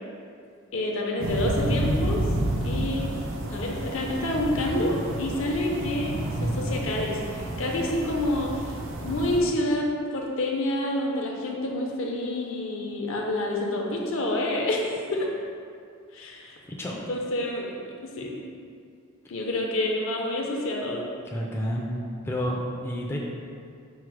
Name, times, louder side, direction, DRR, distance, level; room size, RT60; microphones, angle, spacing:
voice 1, 0.7-2.4 2.6-3.1 3.5-8.8 9.0-15.3 16.1-16.6 16.9-17.8 18.2-18.4 19.3-21.1, left 1 dB, 70° left, -1 dB, 0.6 m, -28 dB
sound 1, 1.2-9.4, right 1 dB, 65° right, 0.5 m, -30 dB
voice 2, 21.3-21.9 22.2-23.2, equal, 10° left, -3 dB, 0.3 m, -29 dB
4.5 x 2.0 x 4.6 m, 2.3 s
head